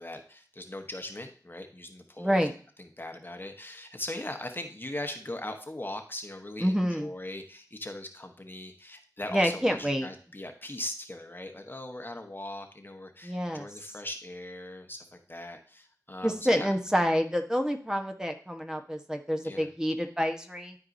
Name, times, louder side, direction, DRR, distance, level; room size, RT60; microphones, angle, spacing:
voice 1, 0.0-2.5 2.8-16.7 19.4-19.7, left 1 dB, 30° left, 5 dB, 1.2 m, -40 dB
voice 2, 2.2-2.5 6.6-7.1 9.3-10.1 13.2-13.7 16.2-20.8, equal, 10° right, 4 dB, 1.1 m, -28 dB
12.0 x 4.7 x 2.7 m, 0.42 s
wide cardioid pair, 40°, 7 cm